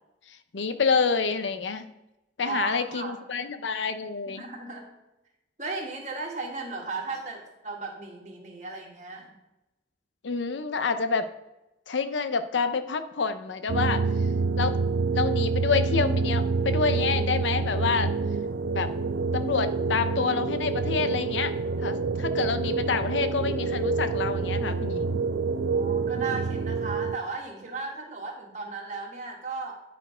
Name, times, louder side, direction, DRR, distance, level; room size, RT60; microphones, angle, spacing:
voice 1, 0.5-1.9 2.4-4.4 10.2-11.3 11.9-14.0 14.6-14.7 15.1-18.1 18.7-18.9 19.3-21.5 21.8-25.2, left 5 dB, 85° left, 11 dB, 0.6 m, -28 dB
voice 2, 2.4-3.2 4.4-4.9 5.6-9.3 25.6-29.8, right 3 dB, 40° right, 0 dB, 1.7 m, -35 dB
sound 1, 13.7-27.2, right 4 dB, 70° right, 0.4 m, -27 dB
9.9 x 4.4 x 4.9 m, 0.94 s
head